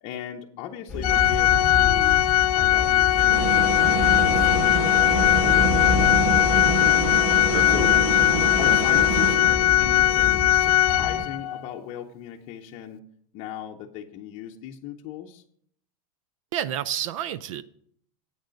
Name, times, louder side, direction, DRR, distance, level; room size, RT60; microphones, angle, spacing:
voice 1, 0.0-2.3 2.5-3.9 4.2-7.2 7.7-8.0 8.6-13.0 13.3-15.4, left 10 dB, 35° left, 0 dB, 0.7 m, -37 dB
sound 1, 0.9-11.2, left 4 dB, 5° left, 1.3 m, -30 dB
Organ, 1.0-11.6, left 14 dB, 80° left, 0.5 m, -20 dB
sound 2, 3.3-9.9, right 6 dB, 80° right, 1.5 m, -28 dB
voice 2, 16.5-17.6, right 10 dB, 60° right, 16 dB, 0.5 m, -29 dB
8.8 x 6.4 x 6.4 m, 0.64 s
supercardioid pair, 160°, 19 cm